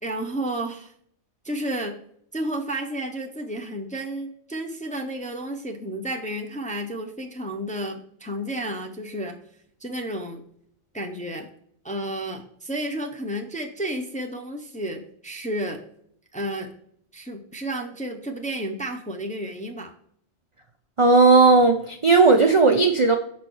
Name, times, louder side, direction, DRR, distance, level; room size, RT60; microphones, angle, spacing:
voice 1, 0.0-0.9 1.4-2.0 2.3-9.4 9.8-10.4 10.9-11.5 11.8-15.8 16.3-16.7 17.1-19.9, right 1 dB, 10° left, 2 dB, 0.5 m, -31 dB
voice 2, 21.0-23.2, right 3 dB, 45° right, 5 dB, 0.4 m, -16 dB
6.1 x 4.2 x 4.6 m, 0.66 s
omnidirectional pair, 1.2 m